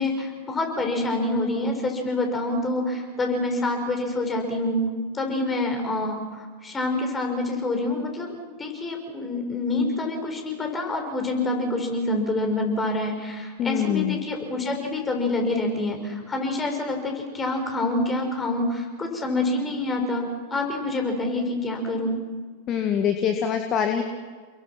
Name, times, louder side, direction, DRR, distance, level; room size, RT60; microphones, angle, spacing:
voice 1, 0.0-4.8 5.1-20.2 20.5-22.2, left 2 dB, 15° left, 3 dB, 6.2 m, -27 dB
voice 2, 13.6-14.2 22.7-24.0, left 8 dB, 35° left, 6 dB, 1.9 m, -24 dB
30.0 x 22.5 x 6.0 m, 1.5 s
figure-of-eight pair, 90°, 0 cm